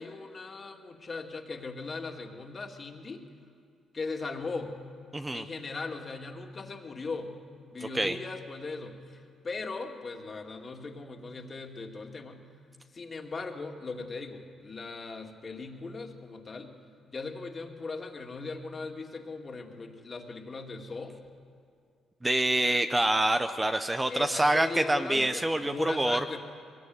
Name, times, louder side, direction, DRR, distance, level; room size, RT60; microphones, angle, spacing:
voice 1, 0.0-3.2 3.9-4.7 5.3-7.3 7.7-12.5 12.9-16.8 17.1-21.1 24.1-26.4, left 3 dB, 35° left, 3 dB, 2.5 m, -39 dB
voice 2, 5.1-5.4 7.9-8.2 22.2-26.2, right 1 dB, 15° right, 8 dB, 0.9 m, -26 dB
22.5 x 21.0 x 9.6 m, 2.3 s
cardioid pair, 90°, 0 cm